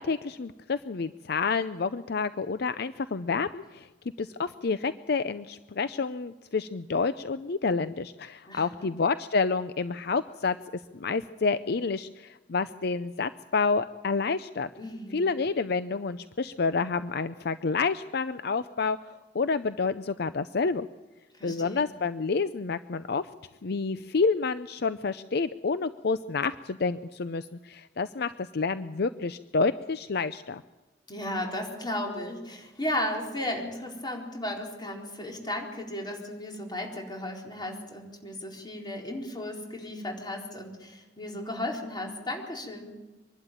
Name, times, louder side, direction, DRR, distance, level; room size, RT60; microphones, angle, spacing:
voice 1, 0.0-3.9 4.2-10.6 10.9-14.7 15.1-20.9 21.4-23.3 23.6-30.6, left 4 dB, 60° left, 13 dB, 0.6 m, -29 dB
voice 2, 8.5-8.9 14.8-15.3 21.3-21.9 31.1-42.9, left 1 dB, 25° left, 0 dB, 4.3 m, -35 dB
24.5 x 12.0 x 9.1 m, 1.2 s
head